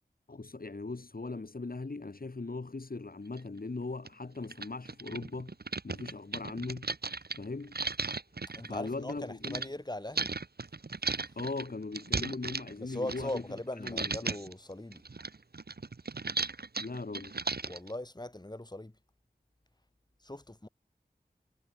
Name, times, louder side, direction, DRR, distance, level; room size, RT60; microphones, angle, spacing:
voice 1, 0.3-5.5 5.8-6.9 7.3-7.7 8.7-9.7 11.4-13.4 13.8-14.4 16.8-17.4, left 3 dB, 60° left, 6.2 m, -39 dB
sound 1, 3.4-3.5 4.1-4.2 4.4-9.7 10.1-13.6 13.8-14.5 14.9-17.9, right 4 dB, 70° right, 3.1 m, -36 dB
voice 2, 8.5-10.3 12.8-15.0 17.7-18.9 20.2-20.7, left 1 dB, 25° left, 7.0 m, -40 dB
wide cardioid pair, 55°, 17 cm